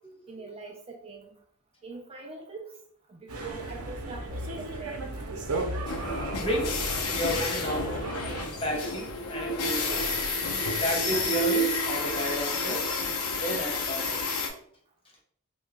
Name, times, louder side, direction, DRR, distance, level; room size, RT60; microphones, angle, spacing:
voice 1, 0.3-1.4 1.8-2.7 3.1-5.1, right 4 dB, 25° right, 1 dB, 0.4 m, -43 dB
sound 1, 3.3-8.5, right 2 dB, 90° right, 0.6 m, -35 dB
sound 2, 5.9-14.5, left 2 dB, 80° left, 0.6 m, -30 dB
voice 2, 6.3-6.8 7.1-8.0 8.4-10.2 10.8-12.9 13.4-14.3, equal, 25° left, -1 dB, 0.7 m, -32 dB
2.9 x 2.2 x 3.4 m, 0.62 s
head